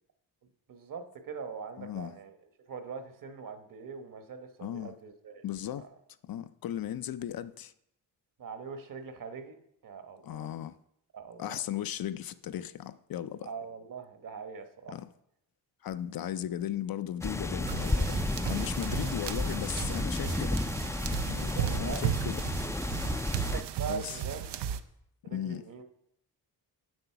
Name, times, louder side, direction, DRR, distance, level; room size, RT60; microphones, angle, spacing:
voice 1, 0.7-2.3 2.7-5.4 5.7-5.9 8.4-9.6 9.8-10.5 11.1-11.6 13.4-15.0 21.3-22.1 23.4-24.5 25.2-25.8, right 6 dB, 55° right, 1.2 m, -42 dB
voice 2, 1.8-2.1 4.6-5.0 5.4-5.9 6.2-7.7 10.2-10.8 11.4-13.5 14.9-15.1 15.8-18.2 18.5-20.6 21.3-22.4 23.9-24.2 25.2-25.6, left 11 dB, 60° left, 0.5 m, -36 dB
sound 1, 17.2-23.6, left 2 dB, 10° left, 0.4 m, -32 dB
sound 2, 17.6-24.8, right 9 dB, 85° right, 0.7 m, -35 dB
7.9 x 7.0 x 5.7 m
cardioid pair, 100°, 40 cm